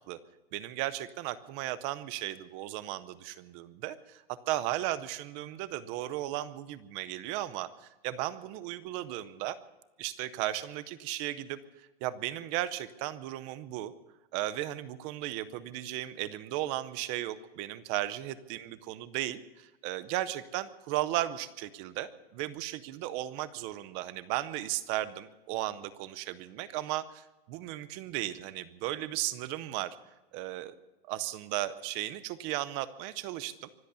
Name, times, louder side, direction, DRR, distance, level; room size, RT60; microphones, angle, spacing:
voice 1, 0.5-4.2 4.5-9.6 10.0-13.9 14.3-30.0 30.3-30.7 31.1-33.7, right 14 dB, 20° right, 15 dB, 0.6 m, -35 dB
24.5 x 8.2 x 6.8 m, 1.1 s
supercardioid pair, 170°, 30 cm